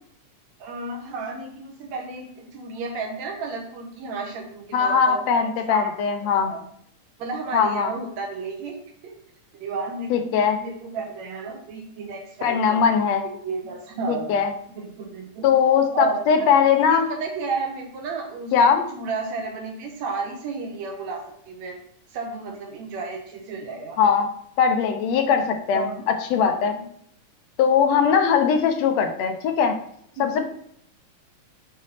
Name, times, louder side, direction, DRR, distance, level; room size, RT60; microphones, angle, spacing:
voice 1, 0.6-6.6 7.2-8.8 9.0-9.2 9.5-10.3 10.6-12.9 13.4-14.4 14.8-15.5 15.9-18.5 18.9-21.8 22.1-24.1 25.7-26.0 26.4-26.8 30.2-30.5, right 4 dB, 70° right, 2 dB, 2.0 m, -32 dB
voice 2, 4.7-6.5 7.5-7.9 10.1-10.6 12.4-13.2 14.1-14.5 15.4-17.1 18.5-18.9 24.0-24.3 24.6-26.7 27.6-29.8 30.2-30.5, left 6 dB, 75° left, 6 dB, 1.7 m, -20 dB
6.5 x 4.1 x 4.1 m, 0.67 s
omnidirectional pair, 3.5 m